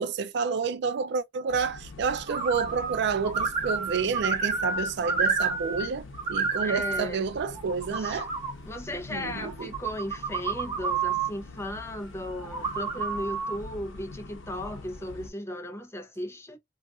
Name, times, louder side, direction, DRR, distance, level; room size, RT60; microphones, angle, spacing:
voice 1, 0.0-6.0 6.3-8.3 9.1-9.7, right 5 dB, 65° right, 0.4 m, -29 dB
sound 1, 1.5-15.3, left 2 dB, 80° left, 0.7 m, -45 dB
sound 2, 2.3-3.0 3.2-5.9 6.1-7.0 7.5-8.5 9.5-11.3 12.4-13.6, right 5 dB, 25° right, 1.1 m, -29 dB
voice 2, 6.6-7.3 7.9-8.2 8.6-16.6, left 1 dB, 15° left, 0.5 m, -36 dB
2.4 x 2.3 x 3.6 m
head